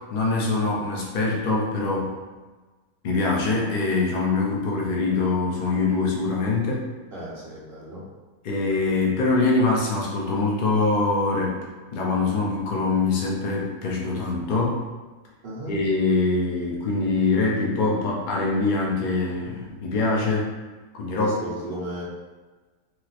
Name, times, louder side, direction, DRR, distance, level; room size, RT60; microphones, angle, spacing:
voice 1, 0.0-2.1 3.0-6.9 8.4-11.7 11.9-14.8 15.7-20.5 20.9-21.3, left 3 dB, 80° left, -4 dB, 0.4 m, -23 dB
voice 2, 7.1-8.0 15.4-15.7 21.2-22.0, right 1 dB, 50° right, -7 dB, 0.9 m, -34 dB
3.0 x 2.9 x 2.4 m, 1.3 s
omnidirectional pair, 1.6 m